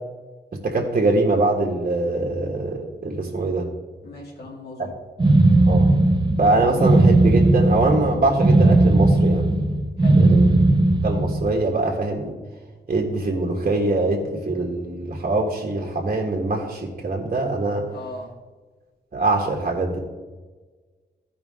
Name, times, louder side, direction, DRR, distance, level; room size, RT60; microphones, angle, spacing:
voice 1, 0.6-3.7 4.8-4.9 5.7-5.9 6.4-9.4 10.2-10.5 11.0-12.3 12.9-17.8 19.1-20.0, right 2 dB, 50° right, -1 dB, 1.5 m, -23 dB
voice 2, 4.0-4.9 10.0-10.2 17.9-18.3, left 2 dB, 70° left, -4 dB, 2.3 m, -38 dB
sound 1, 5.2-11.5, right 2 dB, 25° right, 0.7 m, -17 dB
15.0 x 5.2 x 3.6 m, 1.3 s
wide cardioid pair, 100°, 17 cm